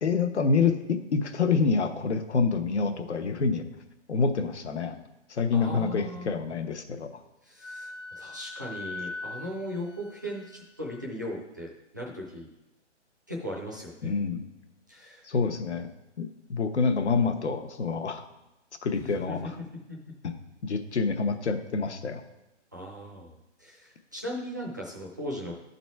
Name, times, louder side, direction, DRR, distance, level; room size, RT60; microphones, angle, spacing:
voice 1, 0.0-3.6 4.1-5.0 5.3-7.2 14.0-14.4 15.2-15.9 16.2-18.2 18.8-19.5 20.2-20.3 20.6-22.2, left 5 dB, 70° left, 7 dB, 1.1 m, -27 dB
voice 2, 5.5-6.5 7.4-11.7 11.9-12.5 13.3-14.1 14.9-15.3 19.0-20.1 22.7-25.6, equal, 15° right, -2 dB, 0.6 m, -38 dB
Wind instrument woodwind instrument, 7.6-11.1, left 3 dB, 90° left, 0.9 m, -41 dB
12.0 x 4.1 x 4.5 m, 0.95 s
hypercardioid pair, 175°, 36 cm